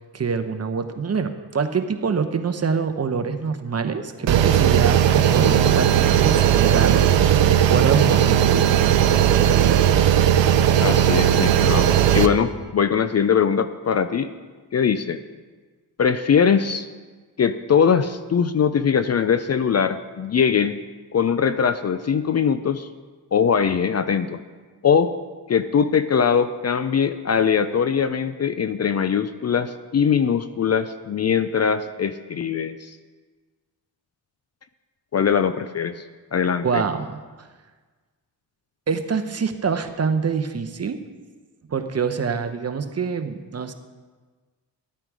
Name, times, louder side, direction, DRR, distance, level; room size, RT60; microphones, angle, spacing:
voice 1, 0.1-8.9 36.6-37.5 38.9-41.0 41.7-43.7, right 5 dB, 35° right, 7 dB, 1.0 m, -25 dB
sound 1, 4.3-12.3, right 10 dB, 85° right, 0.7 m, -17 dB
voice 2, 10.8-14.3 14.7-15.2 16.0-16.9 17.4-20.8 21.1-22.9 23.3-24.4 24.8-25.1 25.5-32.9 35.1-36.0 36.3-36.8, left 7 dB, 40° left, 12 dB, 0.5 m, -21 dB
12.5 x 8.9 x 4.8 m, 1.4 s
cardioid pair, 75°, 43 cm